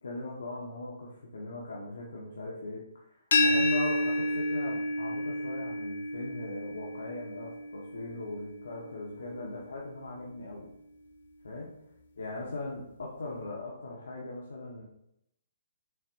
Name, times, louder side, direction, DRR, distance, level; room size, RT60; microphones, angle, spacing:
voice 1, 0.0-10.7 11.4-11.7 12.2-14.8, left 2 dB, 85° left, -4 dB, 1.4 m, -40 dB
sound 1, 3.3-9.1, left 1 dB, 65° left, 1.0 m, -30 dB
7.2 x 6.6 x 2.6 m, 0.79 s
hypercardioid pair, 150°, 0 cm